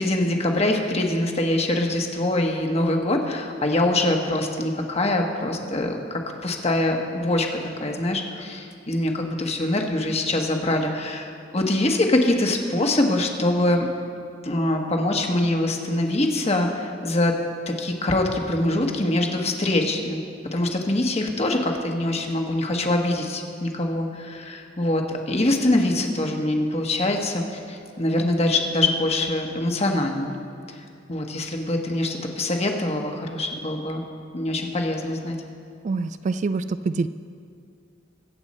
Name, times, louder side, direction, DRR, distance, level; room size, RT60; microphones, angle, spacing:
voice 1, 0.0-7.5 7.8-13.9 14.4-17.4 17.7-20.2 20.5-27.4 27.7-30.3 31.1-34.0 34.3-35.4, left 1 dB, 35° left, 2 dB, 1.3 m, -24 dB
voice 2, 35.8-37.1, right 4 dB, 40° right, 12 dB, 0.3 m, -25 dB
22.5 x 8.0 x 4.3 m, 2.3 s
head